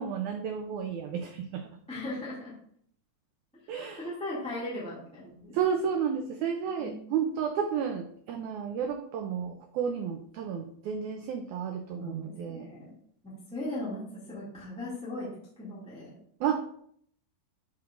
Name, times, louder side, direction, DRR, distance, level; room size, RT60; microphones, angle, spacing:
voice 1, 0.0-1.7 3.7-4.1 5.5-12.7 16.4-16.8, right 7 dB, 85° right, 6 dB, 1.7 m, -32 dB
voice 2, 1.9-2.5 4.0-5.6 6.8-7.1 12.0-12.9 13.2-15.3 15.6-16.2, left 1 dB, 5° left, -8 dB, 1.2 m, -38 dB
11.0 x 4.5 x 2.5 m, 0.64 s
omnidirectional pair, 4.0 m